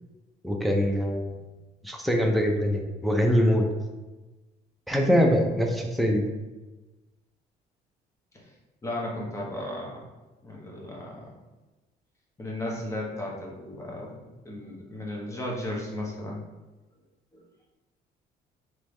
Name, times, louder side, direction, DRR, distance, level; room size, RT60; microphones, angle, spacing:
voice 1, 0.4-1.3 1.8-3.7 4.9-6.2, equal, ahead, 1 dB, 0.5 m, -23 dB
voice 2, 8.8-10.0 10.4-11.3 12.4-16.4 17.3-17.4, left 1 dB, 15° left, -3 dB, 1.0 m, -35 dB
3.3 x 3.1 x 3.1 m, 1.1 s
cardioid pair, 110°, 17 cm